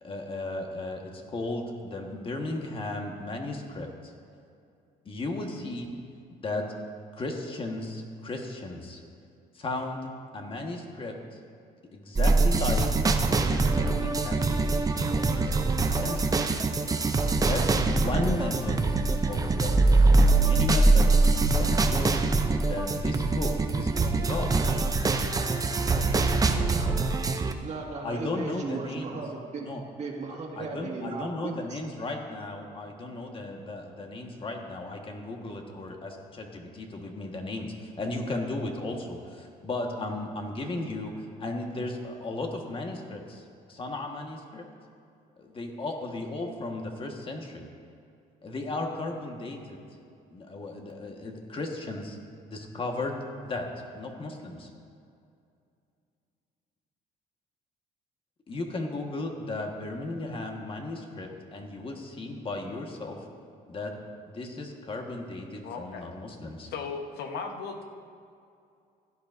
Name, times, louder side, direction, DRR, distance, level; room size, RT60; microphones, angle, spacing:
voice 1, 0.0-4.1 5.0-5.9 6.4-6.6 7.1-9.0 9.5-10.0 10.3-11.4 11.9-15.5 15.9-16.4 17.4-18.8 19.3-22.2 22.6-24.5 28.0-29.2 29.6-29.8 30.6-41.1 41.4-44.6 45.4-47.7 48.4-49.8 50.3-52.2 52.5-53.7 53.9-54.7 58.5-63.2 63.7-63.9 64.3-66.7, left 2 dB, 30° left, 2 dB, 1.5 m, -35 dB
sound 1, 12.2-27.5, right 3 dB, 20° right, 0.6 m, -23 dB
voice 2, 27.6-31.8, right 4 dB, 40° right, 0 dB, 1.9 m, -36 dB
voice 3, 65.6-66.1 66.7-67.8, left 5 dB, 75° left, 4 dB, 1.2 m, -36 dB
16.0 x 11.0 x 2.7 m, 2.4 s
cardioid pair, 110°, 17 cm